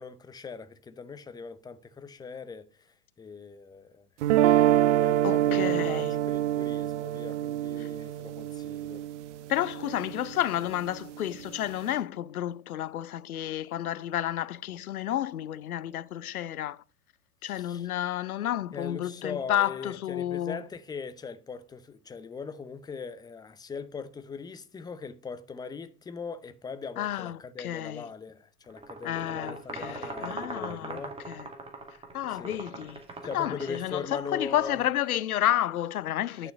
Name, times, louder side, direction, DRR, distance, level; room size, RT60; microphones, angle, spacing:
voice 1, 0.0-2.7 3.2-4.1 5.0-9.0 17.4-17.9 18.7-31.2 32.3-32.6 33.2-34.8 36.4-36.5, left 5 dB, 10° left, 0.7 m, -40 dB
sound 1, 4.2-10.3, right 12 dB, 50° right, 0.8 m, -26 dB
voice 2, 5.2-6.1 7.8-7.9 9.5-16.8 17.4-20.6 27.0-28.0 29.0-31.0 31.3-31.5 32.1-33.0 33.3-36.5, left 12 dB, 70° left, 0.7 m, -31 dB
sound 2, 28.7-34.4, right 3 dB, 10° right, 2.2 m, -41 dB
11.0 x 6.8 x 5.8 m
figure-of-eight pair, 90°, 46 cm